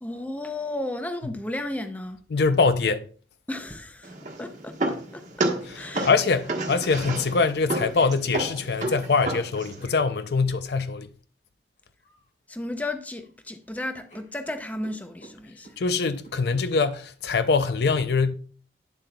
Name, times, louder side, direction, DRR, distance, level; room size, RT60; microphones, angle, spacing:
voice 1, 0.0-2.2 3.5-6.1 12.5-15.7, left 1 dB, 10° left, 0.5 m, -34 dB
voice 2, 2.3-3.0 5.7-11.1 15.8-18.4, left 4 dB, 70° left, 0.5 m, -23 dB
sound 1, 4.0-9.8, right 2 dB, 40° right, 1.3 m, -31 dB
sound 2, 5.1-6.9 7.9-8.2 9.8-10.0 12.0-12.3 12.6-13.3 13.6-13.7 14.1-15.8 16.2-16.4, right 1 dB, 50° left, 3.8 m, -50 dB
9.2 x 7.5 x 2.3 m
head